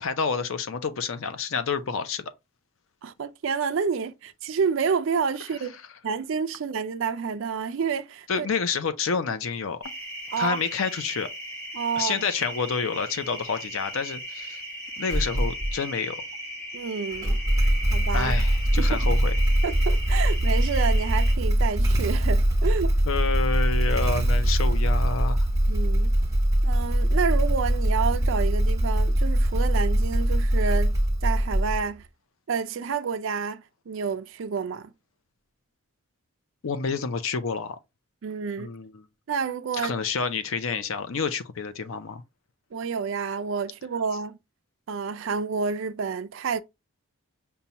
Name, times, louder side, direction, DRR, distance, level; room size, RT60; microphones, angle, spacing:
voice 1, 0.0-2.2 8.3-9.8 10.4-11.3 12.0-14.6 15.0-16.2 18.1-19.4 23.0-25.5 36.6-37.8 38.6-39.1 39.8-42.2, left 5 dB, 65° left, 0.5 m, -29 dB
voice 2, 3.0-5.7 6.0-8.5 10.3-10.6 11.7-12.3 16.7-17.4 17.9-18.3 18.8-19.1 19.6-22.9 25.7-26.1 26.6-32.1 32.5-34.9 38.2-38.7 39.3-39.9 42.7-44.4 44.9-46.6, right 6 dB, 60° right, 0.4 m, -29 dB
sound 1, 9.8-21.3, right 1 dB, 15° left, 1.0 m, -37 dB
Motorcycle / Engine starting, 15.1-15.8 17.1-32.0, right 1 dB, 15° right, 0.9 m, -22 dB
5.4 x 2.2 x 2.8 m
head